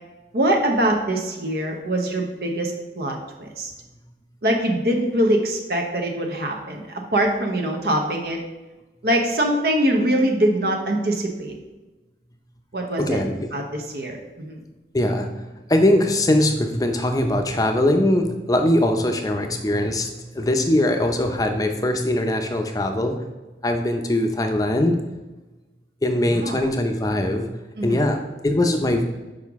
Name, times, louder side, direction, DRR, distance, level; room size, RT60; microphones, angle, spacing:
voice 1, 0.3-3.7 4.4-8.4 9.0-11.5 12.7-13.2 13.5-14.6 26.3-26.8 27.8-28.2, right 1 dB, 60° right, 2 dB, 0.8 m, -23 dB
voice 2, 13.0-13.3 14.9-15.3 15.7-23.2 23.6-25.0 26.0-27.5 27.8-28.2 28.4-29.1, left 1 dB, 20° left, 5 dB, 0.6 m, -21 dB
6.5 x 4.9 x 3.5 m, 1.1 s
head